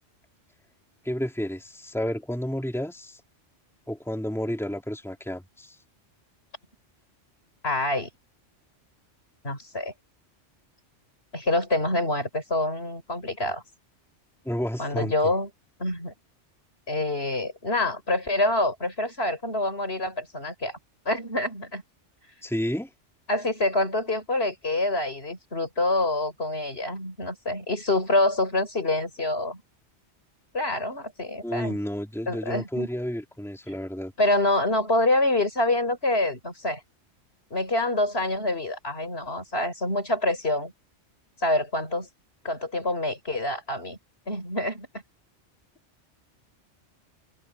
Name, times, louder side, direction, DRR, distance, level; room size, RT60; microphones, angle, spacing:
voice 1, 1.0-3.2 3.9-5.8 14.5-15.1 22.4-22.9 31.4-34.1, equal, ahead, 3.5 m, -31 dB
voice 2, 7.6-8.1 9.4-9.9 11.3-13.6 14.8-15.5 15.8-16.1 16.9-20.8 21.1-21.8 23.3-29.6 30.5-31.8 32.3-32.9 34.2-36.8 37.5-40.7 41.4-42.1 42.4-44.0 44.3-45.0, left 2 dB, 55° left, 5.4 m, -26 dB
omnidirectional pair, 1.2 m